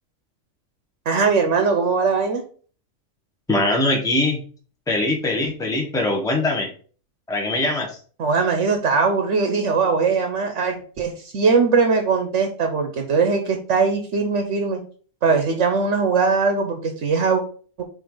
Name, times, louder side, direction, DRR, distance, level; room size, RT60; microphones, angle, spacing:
voice 1, 1.1-2.4 8.2-14.8 15.2-17.4 17.8-17.9, right 4 dB, 65° right, 5 dB, 1.1 m, -20 dB
voice 2, 3.5-4.4 4.9-6.7 7.3-7.9, left 2 dB, 5° left, 1 dB, 1.1 m, -21 dB
7.7 x 3.2 x 3.8 m, 0.43 s
omnidirectional pair, 1.4 m